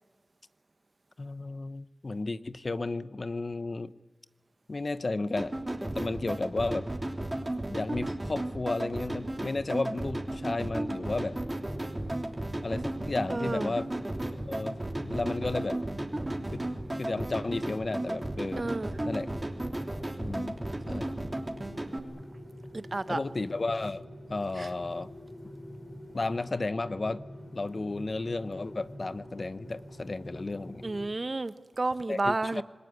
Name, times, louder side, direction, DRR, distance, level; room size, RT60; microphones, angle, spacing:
voice 1, 1.2-3.9 4.7-5.6 5.8-6.9 7.7-11.4 12.6-13.9 14.4-14.8 15.0-15.8 16.5-16.6 17.0-18.7 19.1-19.3 20.2-20.6 20.9-21.1 23.1-25.1 26.1-27.2 27.5-30.8 32.1-32.6, left 3 dB, 50° left, 0.9 m, -33 dB
sound 1, 5.4-22.0, right 1 dB, 25° right, 3.2 m, -34 dB
sound 2, 11.3-31.1, equal, 10° left, 4.5 m, -45 dB
voice 2, 13.3-13.7 18.6-18.9 22.7-23.2 24.6-24.7 30.8-32.6, right 2 dB, 45° right, 1.1 m, -31 dB
26.5 x 20.5 x 9.7 m
wide cardioid pair, 55°, 0 cm